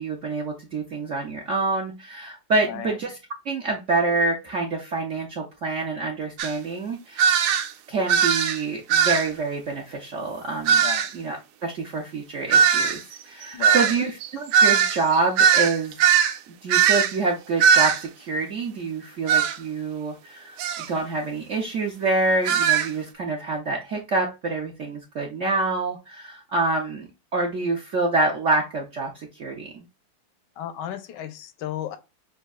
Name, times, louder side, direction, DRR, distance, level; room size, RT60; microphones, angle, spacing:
voice 1, 0.0-3.2 3.4-7.3 7.9-10.8 11.1-15.9 16.6-29.8, right 3 dB, 65° right, 0.7 m, -27 dB
sound 1, 6.4-6.5 7.2-7.7 8.1-8.6 8.9-9.3 10.7-11.1 12.5-16.4 16.7-17.2 17.6-18.0 19.3-19.6 20.6-20.9 22.4-22.9, right 7 dB, 85° right, 1.5 m, -19 dB
voice 2, 10.8-11.1 13.5-13.8 30.6-32.0, left 11 dB, 70° left, 1.1 m, -33 dB
6.3 x 2.6 x 2.3 m
omnidirectional pair, 2.3 m